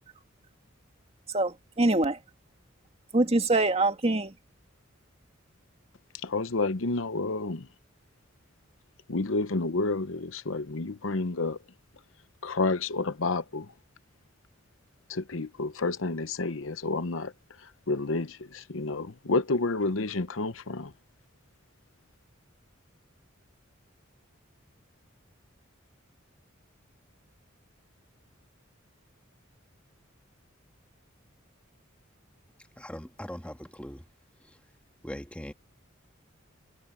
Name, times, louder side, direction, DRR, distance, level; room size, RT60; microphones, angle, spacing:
voice 1, 1.3-2.2 3.1-4.3, right 2 dB, 30° right, 1.9 m, -24 dB
voice 2, 6.2-7.7 9.1-11.6 12.4-13.7 15.1-17.3 17.6-20.9, left 3 dB, 75° left, 0.9 m, -30 dB
voice 3, 32.8-34.0 35.0-35.5, equal, 5° left, 1.7 m, -40 dB
head